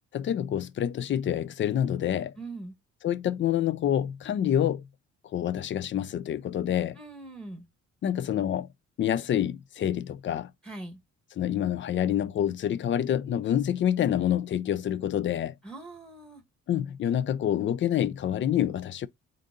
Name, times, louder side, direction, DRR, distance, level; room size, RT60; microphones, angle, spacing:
voice 1, 0.1-2.3 3.0-4.8 5.3-7.0 8.0-8.7 9.0-10.5 11.4-15.6 16.7-19.1, left 10 dB, 40° left, 0.4 m, -27 dB
voice 2, 2.4-2.8 7.0-7.7 10.6-11.0 15.6-16.4, right 2 dB, 5° left, 1.2 m, -41 dB
3.8 x 2.6 x 3.6 m
cardioid pair, 90°, 30 cm